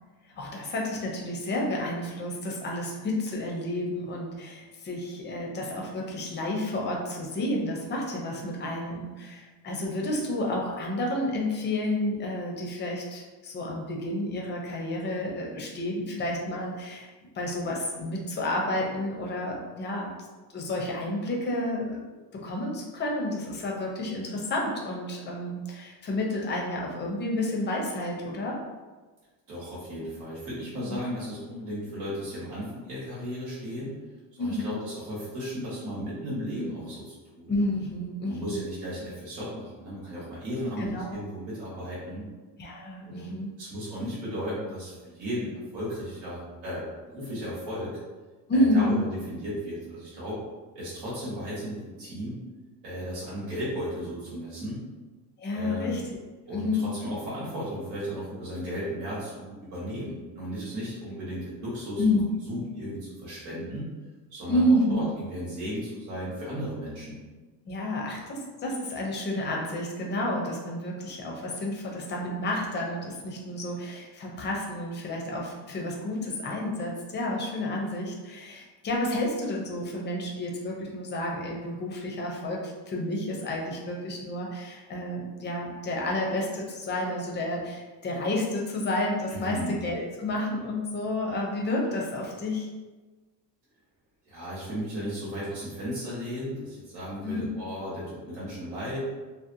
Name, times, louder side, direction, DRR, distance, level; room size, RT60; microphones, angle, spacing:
voice 1, 0.3-17.1 17.3-20.1 20.5-22.0 22.3-28.6 30.9-31.0 34.4-34.7 37.5-38.6 40.8-41.1 42.6-43.5 48.5-49.0 55.4-56.0 56.5-57.0 62.0-62.3 64.5-65.0 67.7-92.7 97.2-97.5, left 1 dB, 25° left, -1 dB, 0.4 m, -30 dB
voice 2, 29.5-33.9 34.4-37.5 38.3-42.2 43.1-48.0 48.5-50.4 50.7-52.4 52.8-54.8 55.5-55.9 56.5-62.0 62.5-63.9 64.3-67.2 89.3-89.8 94.3-99.0, equal, 85° right, -9 dB, 1.2 m, -35 dB
2.8 x 2.0 x 2.5 m, 1.3 s
cardioid pair, 140°, 43 cm